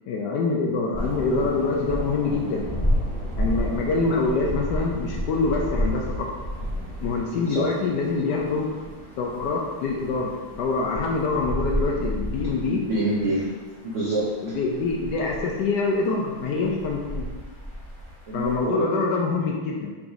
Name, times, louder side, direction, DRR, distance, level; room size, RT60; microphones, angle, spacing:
voice 1, 0.1-2.7 3.4-6.3 7.0-8.7 9.2-12.8 14.4-17.3 18.3-19.9, left 3 dB, 75° left, -1 dB, 1.0 m, -25 dB
sound 1, 0.9-18.6, equal, 20° left, 0.8 m, -32 dB
voice 2, 12.6-13.5 13.8-14.5 18.3-19.0, right 1 dB, 75° right, -5 dB, 0.6 m, -26 dB
3.9 x 2.6 x 4.7 m, 1.3 s
omnidirectional pair, 2.2 m